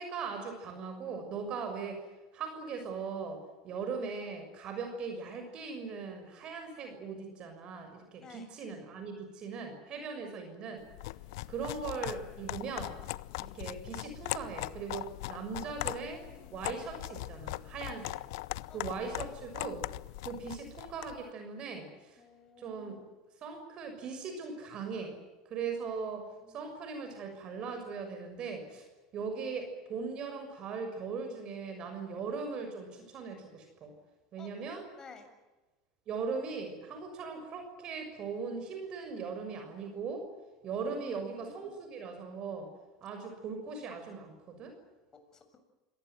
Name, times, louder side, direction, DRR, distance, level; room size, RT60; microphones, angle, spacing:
voice 1, 0.0-2.0 2.3-10.8 11.5-12.9 13.4-16.2 16.5-18.2 18.7-19.8 20.2-22.2 22.6-23.0 23.4-25.2 25.4-26.3 26.5-28.8 29.1-33.9 34.3-34.8 36.1-40.3 40.6-42.7 43.0-44.8, right 5 dB, 45° right, 6 dB, 6.5 m, -39 dB
voice 2, 8.2-8.5 16.3-16.9 18.7-19.2 22.2-23.1 26.4-26.7 34.4-34.5 35.0-35.3 40.9-41.7 43.2-43.3 45.1-45.6, left 5 dB, 30° left, 7 dB, 7.1 m, -54 dB
sound 1, 10.9-21.2, left 19 dB, 70° left, 0.7 m, -40 dB
26.5 x 19.0 x 9.3 m, 1.2 s
hypercardioid pair, 90°, 2 cm